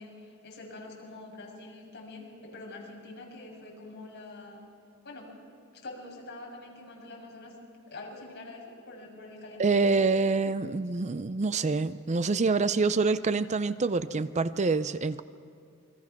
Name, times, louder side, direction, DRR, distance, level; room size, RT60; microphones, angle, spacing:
voice 1, 0.0-4.6 5.0-5.3 5.7-7.6 7.9-9.9, left 2 dB, 50° left, 6.6 m, -45 dB
voice 2, 9.6-15.2, right 4 dB, 35° right, 0.5 m, -26 dB
28.5 x 22.5 x 6.0 m
head